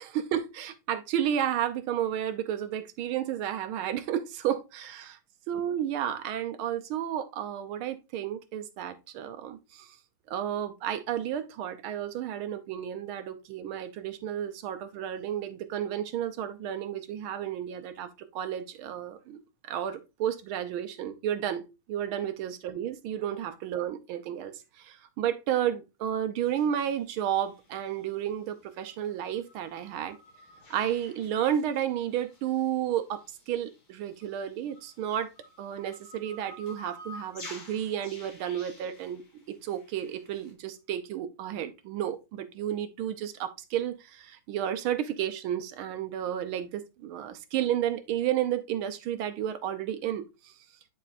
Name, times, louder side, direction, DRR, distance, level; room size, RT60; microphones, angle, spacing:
voice 1, 0.0-5.2 5.5-10.0 10.3-19.4 19.7-30.2 30.7-35.3 35.6-39.2 39.5-50.5, right 10 dB, 75° right, 1.5 m, -32 dB
sound 1, 26.5-40.5, left 1 dB, 75° left, 3.1 m, -51 dB
11.0 x 4.1 x 2.5 m
omnidirectional pair, 2.4 m